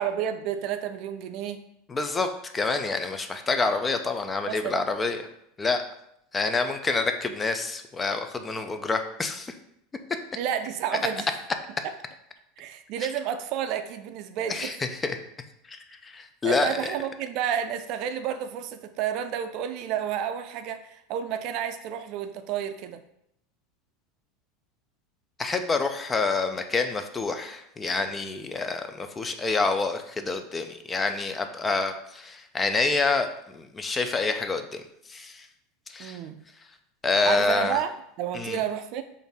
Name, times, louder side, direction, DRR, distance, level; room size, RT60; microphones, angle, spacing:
voice 1, 0.0-1.7 4.5-4.8 10.4-11.3 11.8-11.9 12.6-14.7 16.4-23.0 36.0-36.4 37.3-37.9 38.2-39.0, right 9 dB, 60° right, 9 dB, 0.4 m, -30 dB
voice 2, 1.9-5.2 5.6-5.8 6.3-9.5 14.5-15.2 15.7-17.0 25.4-34.8 35.1-35.5 35.9-36.2 37.0-37.8 38.3-38.6, left 3 dB, 20° left, 7 dB, 0.4 m, -27 dB
3.9 x 2.6 x 3.5 m, 0.76 s
hypercardioid pair, 105°, 0 cm